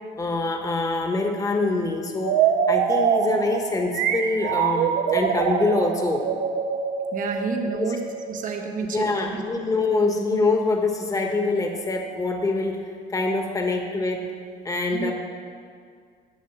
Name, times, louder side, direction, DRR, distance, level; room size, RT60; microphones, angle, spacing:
voice 1, 0.2-2.4 2.7-6.2 7.8-8.0 8.9-12.8 13.1-14.3 14.6-15.1, left 3 dB, 20° left, 3 dB, 1.3 m, -25 dB
sound 1, 2.2-8.9, right 8 dB, 85° right, 0.7 m, -24 dB
voice 2, 7.1-9.4 14.9-15.1, right 5 dB, 50° right, 4 dB, 1.3 m, -30 dB
10.0 x 6.6 x 8.0 m, 2.1 s
cardioid pair, 110°, 17 cm